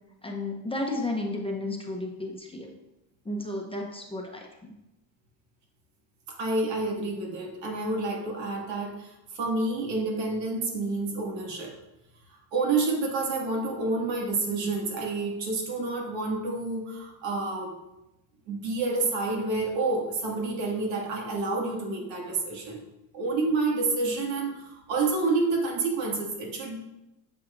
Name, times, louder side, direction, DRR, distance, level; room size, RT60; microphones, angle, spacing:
voice 1, 0.2-2.7 3.2-4.7, left 2 dB, 10° left, 1 dB, 0.8 m, -33 dB
voice 2, 6.4-11.7 12.3-17.7 18.5-22.8 23.1-26.8, right 3 dB, 75° right, -1 dB, 2.2 m, -29 dB
8.9 x 6.5 x 2.6 m, 0.93 s
cardioid pair, 130°, 45 cm